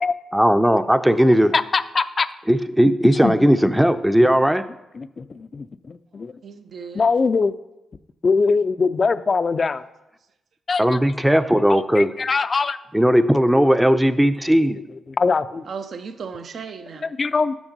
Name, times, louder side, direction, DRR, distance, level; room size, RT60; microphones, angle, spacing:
voice 1, 0.3-1.5 2.5-4.6 10.8-12.1 12.9-14.8, equal, 5° right, 11 dB, 0.5 m, -17 dB
voice 2, 1.5-2.3 3.2-3.5 4.9-6.3 6.9-7.5 8.2-9.8 10.7-10.8 11.7-12.8 14.5-14.6 15.1-15.6 17.0-17.5, left 4 dB, 45° left, 13 dB, 0.4 m, -22 dB
voice 3, 6.4-7.1 15.7-17.1, right 5 dB, 65° right, 9 dB, 0.6 m, -35 dB
6.2 x 5.9 x 5.3 m, 0.93 s
supercardioid pair, 55°, 0 cm